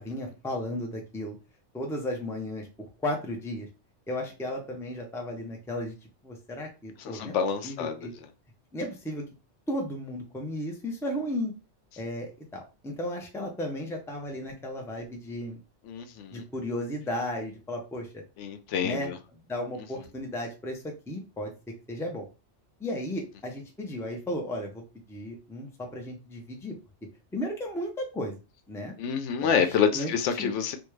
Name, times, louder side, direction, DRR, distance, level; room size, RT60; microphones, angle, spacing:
voice 1, 0.0-1.4 1.7-2.7 3.0-3.7 4.1-6.0 6.2-7.3 7.6-8.1 8.7-9.2 9.7-11.5 12.0-15.6 16.3-18.1 18.8-19.1 19.5-21.5 21.9-22.3 22.8-24.8 25.1-26.8 27.3-28.4 28.7-28.9 29.4-30.5, left 1 dB, 5° left, 0.5 m, -34 dB
voice 2, 7.0-8.1 15.9-16.4 18.4-19.1 29.0-30.8, left 7 dB, 85° left, 0.9 m, -27 dB
3.4 x 2.3 x 3.1 m
omnidirectional pair, 1.2 m